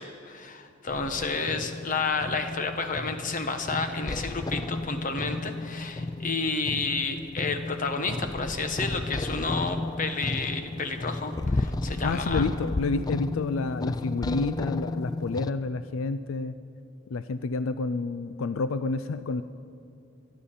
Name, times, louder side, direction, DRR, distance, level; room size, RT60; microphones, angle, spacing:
voice 1, 0.0-12.4, left 4 dB, 40° left, 7 dB, 1.2 m, -31 dB
sound 1, 0.9-15.5, left 2 dB, 20° left, 0.3 m, -33 dB
voice 2, 12.0-16.6 17.1-19.4, left 3 dB, 80° left, 12 dB, 0.4 m, -29 dB
24.0 x 10.5 x 5.6 m, 2.6 s
head